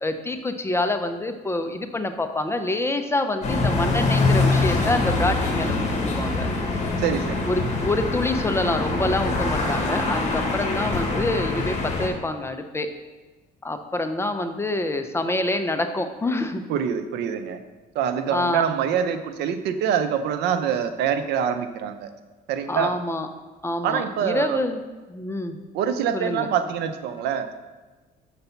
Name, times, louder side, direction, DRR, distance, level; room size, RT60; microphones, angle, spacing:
voice 1, 0.0-6.5 7.5-12.9 13.6-16.6 18.3-18.6 22.7-23.3 23.6-24.8 25.1-25.6 26.1-26.5, left 2 dB, 15° left, 7 dB, 0.6 m, -26 dB
sound 1, 3.4-12.1, left 3 dB, 45° left, 1.5 m, -24 dB
voice 2, 7.0-7.5 16.7-17.6 17.9-22.1 22.5-23.0 23.8-24.6 25.7-27.5, right 8 dB, 80° right, 9 dB, 0.6 m, -25 dB
6.9 x 4.0 x 5.6 m, 1.3 s
cardioid pair, 110°, 17 cm